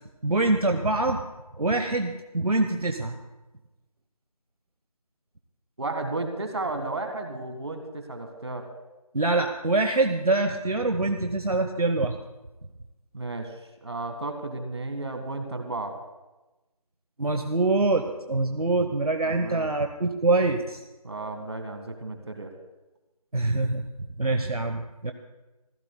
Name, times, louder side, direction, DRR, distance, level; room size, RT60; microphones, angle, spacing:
voice 1, 0.2-1.2 1.6-3.2 9.1-12.2 17.2-20.8 23.3-23.8 24.2-25.1, right 2 dB, 70° right, 6 dB, 1.1 m, -24 dB
voice 2, 5.8-8.6 13.1-13.5 13.8-15.9 19.2-19.7 21.0-22.5, right 2 dB, 45° right, 6 dB, 1.8 m, -33 dB
26.5 x 15.5 x 2.3 m, 1.1 s
figure-of-eight pair, 170°, 20 cm